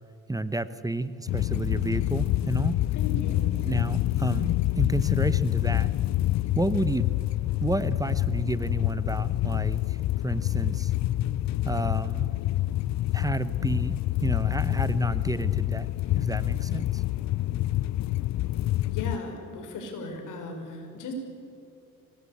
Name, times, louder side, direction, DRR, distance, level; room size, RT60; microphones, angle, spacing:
voice 1, 0.3-2.8 3.7-5.9 6.6-7.1 7.6-10.0 10.2-10.9 11.6-12.4 13.1-17.0, right 2 dB, 10° right, 13 dB, 0.9 m, -30 dB
sound 1, 1.3-19.2, left 15 dB, 65° left, 0.5 m, -27 dB
voice 2, 2.9-3.6 18.9-21.1, left 3 dB, 85° left, 4 dB, 5.5 m, -37 dB
26.0 x 19.5 x 8.7 m, 2.7 s
cardioid pair, 90°, 30 cm